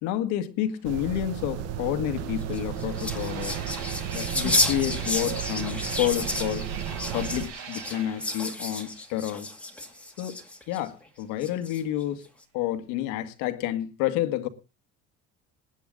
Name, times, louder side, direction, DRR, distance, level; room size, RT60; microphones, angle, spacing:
voice 1, 0.0-3.6 4.1-6.7 7.1-9.5 10.2-10.4 10.7-12.2 12.5-14.5, left 12 dB, 80° left, 1.9 m, -29 dB
sound 1, 0.8-7.5, right 9 dB, 60° right, 1.3 m, -34 dB
sound 2, 1.1-1.2 1.5-10.1, right 7 dB, 75° right, 7.9 m, -43 dB
sound 3, 2.4-10.8 11.4-12.0, left 2 dB, 5° left, 2.1 m, -31 dB
20.0 x 9.3 x 3.8 m
cardioid pair, 155°, 29 cm